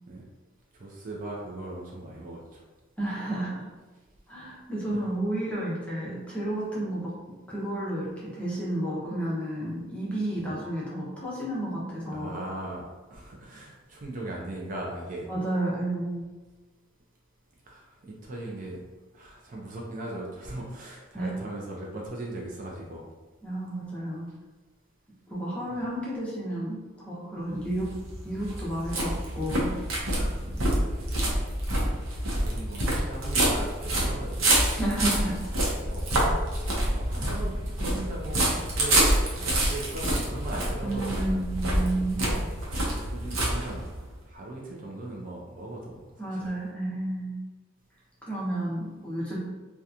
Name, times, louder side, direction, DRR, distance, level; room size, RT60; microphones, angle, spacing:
voice 1, 0.7-2.6 4.9-5.0 10.4-10.6 12.1-12.8 13.1-15.3 17.7-18.8 19.1-23.1 30.4-30.8 32.1-34.7 35.8-36.1 36.9-41.4 42.8-43.8 44.3-46.0 46.4-46.5, right 1 dB, 40° right, -2 dB, 0.4 m, -38 dB
voice 2, 3.0-3.6 4.3-12.4 15.3-16.3 21.1-21.3 23.4-24.3 25.3-27.9 28.2-29.7 30.2-30.3 34.8-35.4 40.8-42.2 46.2-47.3 48.2-49.4, right 1 dB, 5° left, -7 dB, 0.6 m, -31 dB
sound 1, 27.6-44.1, right 1 dB, 85° right, 0.7 m, -27 dB
2.8 x 2.2 x 2.4 m, 1.3 s
head